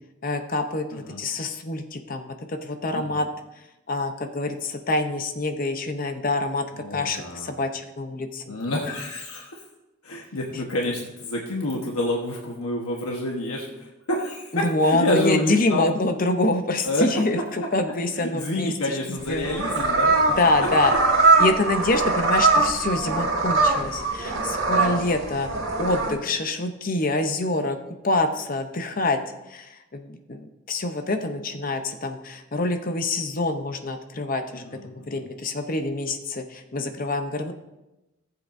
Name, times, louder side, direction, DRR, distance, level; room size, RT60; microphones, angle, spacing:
voice 1, 0.2-3.3 3.9-8.6 14.5-19.0 19.3-19.5 20.4-20.9 21.4-25.5 25.8-27.8 28.0-29.2 29.5-37.5, left 2 dB, 40° left, 6 dB, 0.7 m, -26 dB
voice 2, 6.8-7.5 8.5-9.6 10.0-15.9 16.8-17.1 18.2-20.2 24.8-25.1 34.5-35.2, left 1 dB, 85° left, -1 dB, 1.2 m, -28 dB
sound 1, 19.2-26.1, right 3 dB, 60° right, 1.6 m, -22 dB
17.5 x 7.6 x 2.6 m, 0.99 s
head